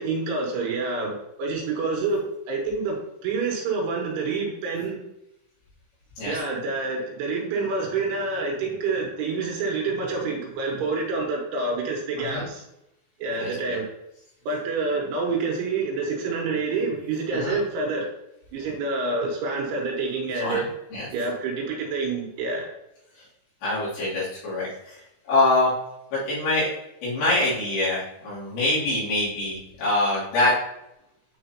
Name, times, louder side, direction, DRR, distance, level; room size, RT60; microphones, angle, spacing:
voice 1, 0.0-5.0 6.3-12.6 13.2-13.8 14.5-18.1 18.5-20.7 21.1-22.7, right 3 dB, 75° right, -1 dB, 3.6 m, -27 dB
voice 2, 13.4-13.8 17.3-17.6 20.4-20.6 20.9-21.1 23.6-25.0 25.3-25.7 26.1-26.7 27.0-30.5, left 2 dB, 60° left, -9 dB, 4.7 m, -24 dB
9.3 x 4.8 x 2.8 m, 0.86 s
omnidirectional pair, 5.9 m